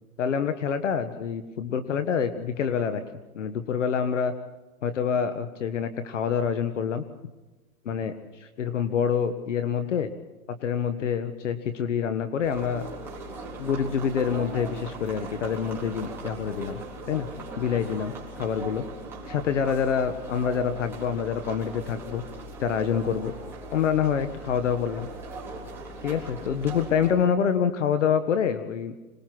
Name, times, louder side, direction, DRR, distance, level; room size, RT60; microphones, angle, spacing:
voice 1, 0.2-3.0 3.3-4.3 4.8-7.0 7.8-10.1 10.5-12.9 13.6-16.8 17.1-17.3 17.6-18.8 19.3-22.2 22.6-23.3 23.7-25.1 26.0-28.9, left 7 dB, 55° left, 10 dB, 1.5 m, -26 dB
sound 1, 12.4-27.1, right 2 dB, 5° right, 3.8 m, -39 dB
26.0 x 20.5 x 6.1 m, 1.1 s
hypercardioid pair, 165°, 44 cm